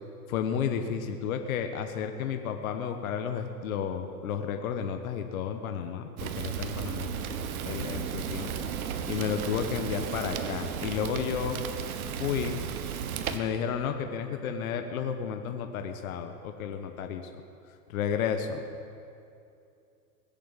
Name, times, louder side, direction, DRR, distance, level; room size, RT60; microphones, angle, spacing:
voice 1, 0.3-7.1 7.6-8.7 9.1-11.6 12.1-12.6 13.3-17.3 17.9-18.6, left 7 dB, 60° left, 6 dB, 1.2 m, -32 dB
Fire, 6.2-13.4, right 7 dB, 60° right, 1.2 m, -34 dB
19.5 x 7.3 x 7.4 m, 2.6 s
hypercardioid pair, 135°, 48 cm